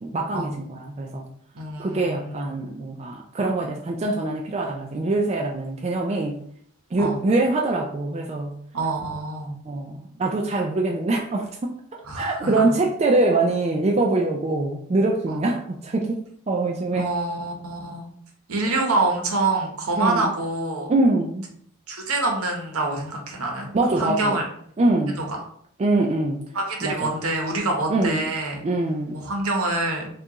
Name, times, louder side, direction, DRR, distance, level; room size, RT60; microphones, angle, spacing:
voice 1, 0.0-1.3 1.8-6.4 6.9-8.5 9.7-11.8 12.2-17.1 20.0-20.3 20.9-21.4 23.7-24.4 24.8-25.2 25.8-26.5 26.8-27.2 27.9-28.3 28.6-29.2, right 2 dB, 30° right, 1 dB, 0.3 m, -24 dB
voice 2, 1.5-2.5 7.0-7.2 8.7-9.5 12.0-12.8 15.3-15.4 16.9-18.1 18.5-20.9 21.9-24.4 25.2-25.4 26.5-28.6 29.1-30.1, right 2 dB, 75° right, 1 dB, 0.9 m, -26 dB
4.5 x 2.4 x 2.9 m, 0.64 s
head